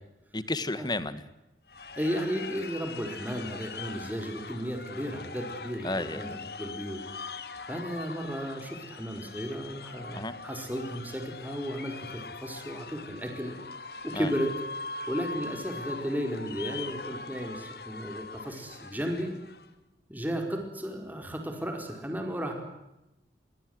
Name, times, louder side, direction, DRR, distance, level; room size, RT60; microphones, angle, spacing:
voice 1, 0.3-1.3 5.8-6.2 10.1-10.3 14.1-14.3, left 2 dB, 25° left, 14 dB, 1.7 m, -32 dB
sound 1, 1.7-19.7, left 4 dB, 60° left, 2.2 m, -42 dB
voice 2, 2.0-7.0 7.7-13.5 14.0-14.6 15.1-19.3 20.1-22.5, equal, 10° right, 3 dB, 4.6 m, -34 dB
27.0 x 23.5 x 8.0 m, 0.95 s
head